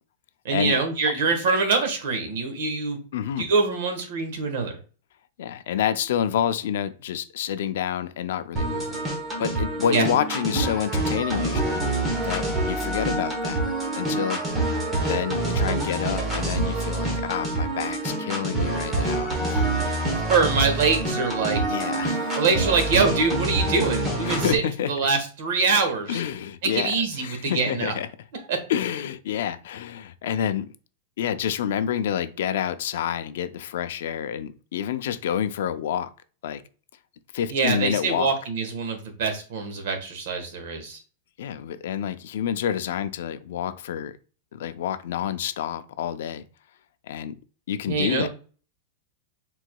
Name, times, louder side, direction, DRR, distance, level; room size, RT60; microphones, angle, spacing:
voice 1, 0.4-3.0 3.4-4.7 9.9-10.0 20.1-21.6 22.4-24.6 24.9-26.2 26.6-27.9 28.5-28.6 37.5-41.0 47.9-48.3, right 4 dB, 55° right, 1.2 m, -24 dB
voice 2, 3.1-3.5 5.4-9.0 9.4-11.8 12.2-13.6 14.0-14.4 15.1-20.2 21.7-22.4 24.2-24.9 26.1-28.1 28.7-30.7 31.2-36.1 36.4-36.6 37.3-38.3 41.4-44.1 44.5-46.4 47.1-47.3 47.7-48.3, left 9 dB, 60° left, 0.4 m, -28 dB
sound 1, 8.6-24.6, right 2 dB, 10° right, 0.9 m, -26 dB
4.7 x 3.7 x 2.2 m
supercardioid pair, 175°, 0 cm